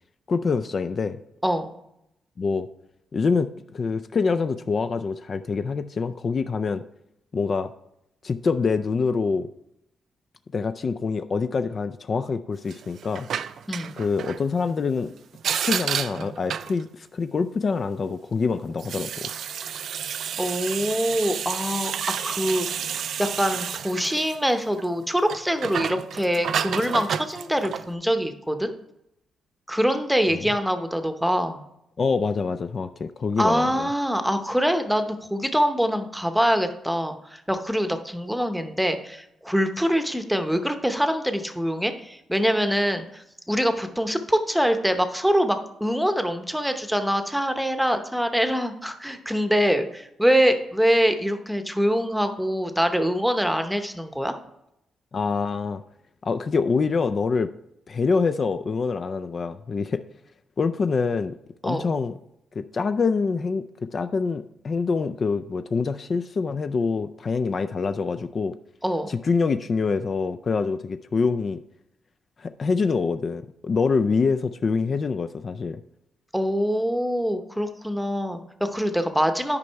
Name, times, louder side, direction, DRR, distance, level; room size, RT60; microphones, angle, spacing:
voice 1, 0.3-1.2 2.4-2.7 3.1-6.8 7.3-7.7 8.2-9.5 10.5-13.3 14.0-15.1 15.4-19.3 30.3-30.4 32.0-33.9 55.1-55.8 56.2-57.5 57.9-60.0 60.6-61.4 61.6-62.2 62.6-68.6 69.1-71.6 72.4-75.8, left 4 dB, 45° left, 10 dB, 0.4 m, -25 dB
sound 1, 12.7-14.4 15.4-16.8 18.7-24.9 25.2-27.9, right 8 dB, 70° right, 0.4 m, -30 dB
voice 2, 13.7-14.0 20.4-21.9 22.2-22.7 23.2-28.7 29.7-31.6 33.4-54.4 61.6-61.9 68.8-69.1 76.3-79.6, equal, ahead, 7 dB, 0.9 m, -24 dB
9.8 x 5.3 x 4.6 m, 0.82 s
cardioid pair, 85°, 0 cm